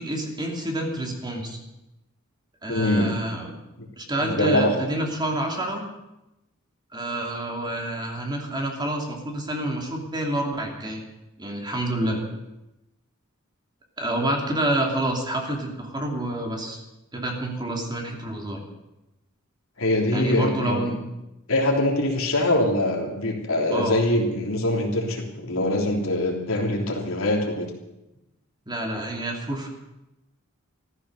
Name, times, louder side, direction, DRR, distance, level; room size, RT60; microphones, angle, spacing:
voice 1, 0.0-1.6 2.6-3.5 4.0-5.8 6.9-11.0 11.4-12.2 14.0-16.8 17.1-18.6 20.1-21.0 21.7-21.8 23.7-24.0 28.7-29.7, right 1 dB, 20° right, 1 dB, 2.8 m, -28 dB
voice 2, 2.7-3.1 3.8-3.9 4.2-4.7 19.8-20.9 21.5-27.7, left 1 dB, 85° left, 0 dB, 3.3 m, -23 dB
15.0 x 14.0 x 6.7 m, 0.95 s
head